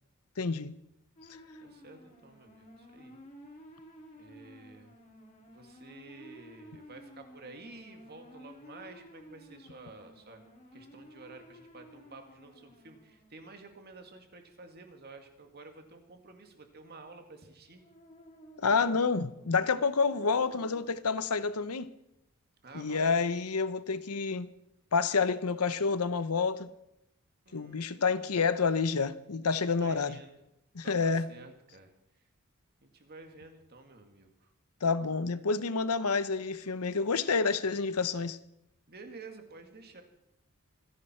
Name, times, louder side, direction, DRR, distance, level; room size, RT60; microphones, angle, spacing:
voice 1, 0.4-0.7 18.6-21.9 22.7-24.5 24.9-26.7 27.5-30.2 30.7-31.3 34.8-38.4, left 4 dB, 85° left, 0.8 m, -28 dB
sound 1, 1.2-13.5 17.7-20.9, equal, 35° left, 3.5 m, -54 dB
voice 2, 1.6-3.2 4.2-5.0 5.5-10.4 10.7-17.8 18.6-18.9 22.6-23.5 27.5-28.7 29.7-30.4 30.8-31.9 32.8-34.5 38.9-40.0, right 3 dB, 45° right, 2.2 m, -51 dB
25.5 x 10.5 x 4.5 m
head